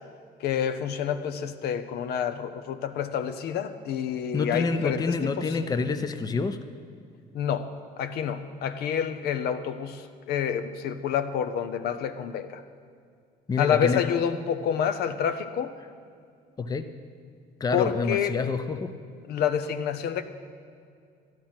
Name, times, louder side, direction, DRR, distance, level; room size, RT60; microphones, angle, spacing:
voice 1, 0.4-5.6 7.3-12.6 13.6-15.8 17.7-18.4 19.3-20.2, left 8 dB, 75° left, 9 dB, 0.7 m, -28 dB
voice 2, 4.3-6.6 13.5-14.0 16.6-16.9 17.6-18.9, left 4 dB, 20° left, 9 dB, 0.6 m, -27 dB
12.0 x 10.5 x 5.8 m, 2.2 s
cardioid pair, 110°, 17 cm